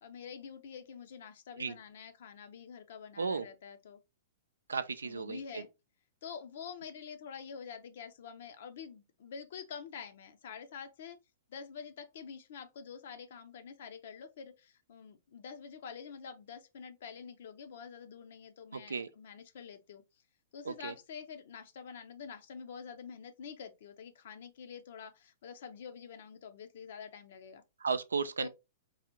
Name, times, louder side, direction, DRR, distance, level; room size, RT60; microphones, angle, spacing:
voice 1, 0.0-4.0 5.0-5.7 6.2-11.2 11.5-20.0 20.5-27.6 28.4-28.5, left 6 dB, 55° left, 0.7 m, -47 dB
voice 2, 4.7-5.6 18.7-19.1 20.6-20.9 27.8-28.5, right 5 dB, 70° right, 0.4 m, -34 dB
4.7 x 2.4 x 2.9 m
figure-of-eight pair, 110°, 0 cm